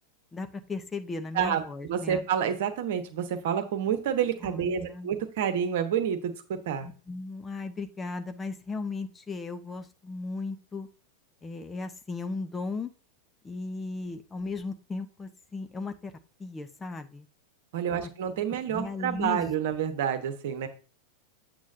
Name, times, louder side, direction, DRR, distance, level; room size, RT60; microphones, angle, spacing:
voice 1, 0.3-2.2 4.4-5.1 6.8-10.9 11.4-12.9 13.4-16.1 16.4-17.3 17.9-18.1 18.7-19.5, left 3 dB, 15° left, 7 dB, 0.8 m, -36 dB
voice 2, 1.9-6.9 17.7-20.7, right 8 dB, 55° right, 9 dB, 1.2 m, -29 dB
8.5 x 7.8 x 2.7 m, 0.36 s
figure-of-eight pair, 90°, 0 cm